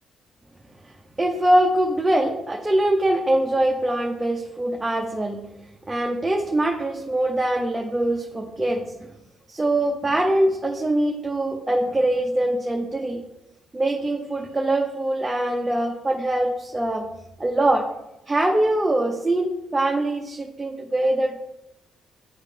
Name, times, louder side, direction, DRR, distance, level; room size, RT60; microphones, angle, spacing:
voice 1, 1.2-5.4 5.9-8.8 9.5-13.2 13.7-17.1 17.4-17.8 18.3-21.4, right 1 dB, 15° right, 0 dB, 0.7 m, -23 dB
9.1 x 3.2 x 3.3 m, 0.89 s
cardioid pair, 90°, 0 cm